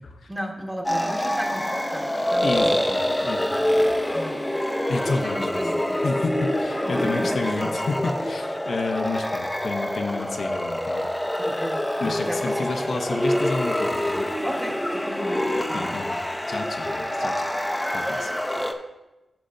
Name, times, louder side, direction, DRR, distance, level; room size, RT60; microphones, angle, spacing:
voice 1, 0.3-2.7 4.1-4.4 5.0-6.0 6.8-7.7 11.4-12.9 14.4-16.0, equal, 10° right, 1 dB, 1.4 m, -35 dB
sound 1, 0.8-18.7, left 1 dB, 10° left, 0.7 m, -26 dB
voice 2, 2.4-4.0 4.9-5.6 6.0-11.1 12.0-14.3 15.7-16.2 16.5-17.3 17.9-18.3, left 3 dB, 75° left, 4 dB, 0.7 m, -30 dB
11.5 x 6.7 x 2.6 m, 1.0 s
cardioid pair, 70°, 0 cm